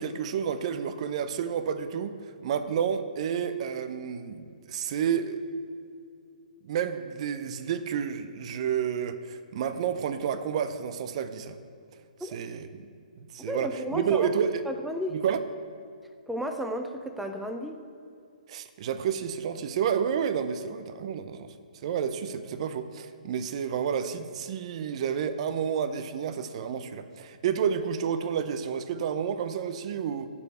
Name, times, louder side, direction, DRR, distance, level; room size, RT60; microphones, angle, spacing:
voice 1, 0.0-2.2 2.4-5.4 6.6-11.6 12.2-12.9 13.2-14.6 15.1-15.4 18.5-21.5 21.8-30.3, right 7 dB, 45° right, 11 dB, 0.6 m, -30 dB
voice 2, 13.4-14.3 14.7-15.2 16.3-17.8, equal, ahead, 5 dB, 0.4 m, -33 dB
7.0 x 6.7 x 7.9 m, 2.4 s
hypercardioid pair, 135°, 5 cm